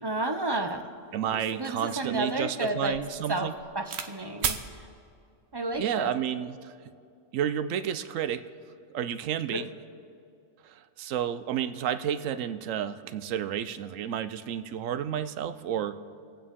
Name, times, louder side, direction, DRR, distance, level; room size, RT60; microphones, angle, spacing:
voice 1, 0.0-0.8 1.6-3.0 3.3-3.5 3.7-4.6 5.5-6.1 9.5-9.6, right 2 dB, 25° right, 6 dB, 0.5 m, -31 dB
sound 1, 0.7-0.8 1.3-4.1 4.4-4.7 5.5-5.9, right 7 dB, 60° right, 1.0 m, -36 dB
voice 2, 1.1-3.5 5.7-6.7 7.3-8.4 8.9-9.7 10.6-16.0, right 9 dB, 85° right, 12 dB, 1.0 m, -31 dB
25.5 x 8.8 x 3.7 m, 2.4 s
omnidirectional pair, 1.3 m